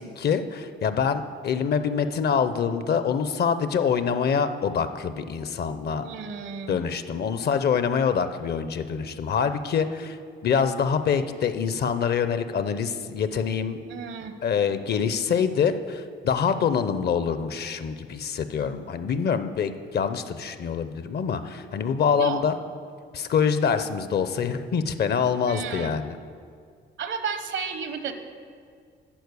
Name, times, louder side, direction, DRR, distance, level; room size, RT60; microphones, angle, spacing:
voice 1, 0.2-6.0 6.7-10.2 10.4-13.8 14.4-22.5 23.1-26.2, left 6 dB, 55° left, 11 dB, 0.6 m, -25 dB
voice 2, 6.0-6.8 13.9-14.3 22.2-22.4 25.4-25.9 27.0-28.1, right 6 dB, 70° right, 8 dB, 0.9 m, -32 dB
11.5 x 4.6 x 8.2 m, 2.2 s
cardioid pair, 90°, 20 cm